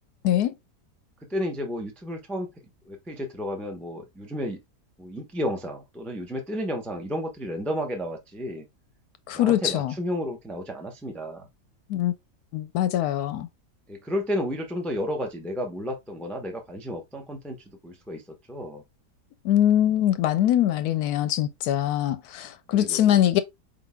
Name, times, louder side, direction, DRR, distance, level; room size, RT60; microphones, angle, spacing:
voice 1, 1.3-2.5 2.9-4.6 5.0-8.7 9.3-11.5 13.9-17.6 17.8-18.2 18.5-18.8 22.7-23.2, equal, ahead, 0.4 m, -32 dB
voice 2, 9.3-9.9 11.9-12.1 12.5-13.5 19.4-23.4, left 12 dB, 75° left, 1.0 m, -23 dB
4.6 x 3.9 x 2.2 m
omnidirectional pair, 1.8 m